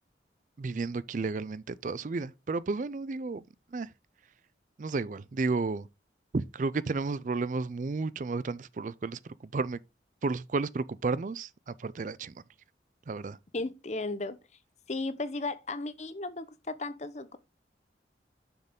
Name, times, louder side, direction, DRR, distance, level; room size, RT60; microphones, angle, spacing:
voice 1, 0.6-3.4 3.7-3.9 4.8-5.9 6.3-9.8 10.2-12.4 13.1-13.4, right 3 dB, 45° right, 0.4 m, -32 dB
voice 2, 13.5-14.4 14.9-17.4, left 2 dB, 40° left, 0.8 m, -35 dB
6.9 x 6.6 x 3.7 m
head